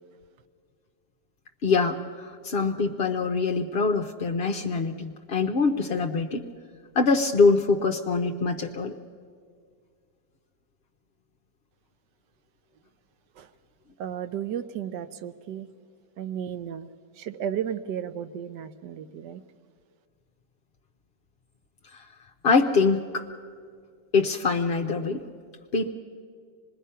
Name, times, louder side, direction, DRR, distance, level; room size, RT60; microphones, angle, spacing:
voice 1, 1.6-6.5 6.9-8.9 21.9-22.1 22.4-23.3 24.1-25.2 25.7-25.9, left 4 dB, 55° left, 3 dB, 0.7 m, -24 dB
voice 2, 14.0-15.7 16.2-16.9 17.2-19.4, right 9 dB, 90° right, 11 dB, 1.4 m, -34 dB
25.5 x 20.5 x 5.6 m, 2.1 s
omnidirectional pair, 1.8 m